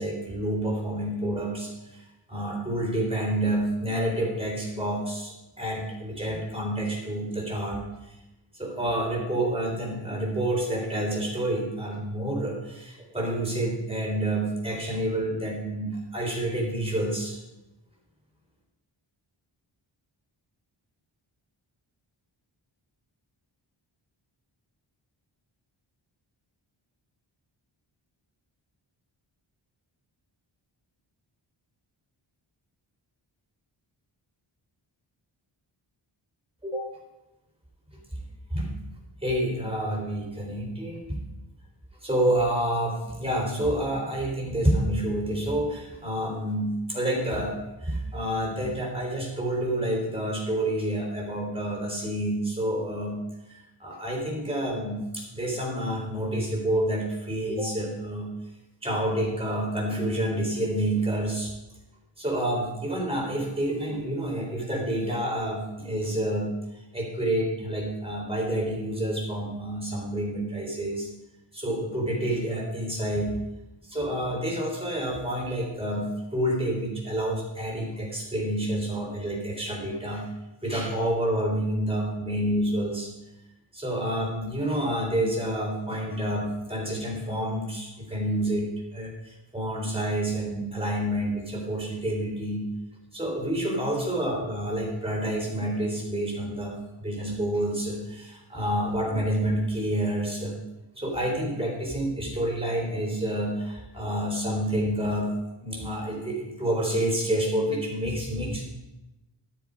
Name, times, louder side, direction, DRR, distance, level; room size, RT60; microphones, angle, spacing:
voice 1, 0.0-2.0 2.3-7.8 8.5-17.4 36.6-36.9 38.5-38.7 39.2-41.0 42.0-53.2 53.5-58.3 58.8-61.5 62.2-71.1 71.5-73.3 73.8-80.3 80.6-83.1 83.7-92.6 93.1-100.6 101.0-105.3 105.6-108.6, right 1 dB, 10° right, -2 dB, 3.7 m, -28 dB
12.5 x 7.8 x 5.0 m, 0.97 s
wide cardioid pair, 85°, 48 cm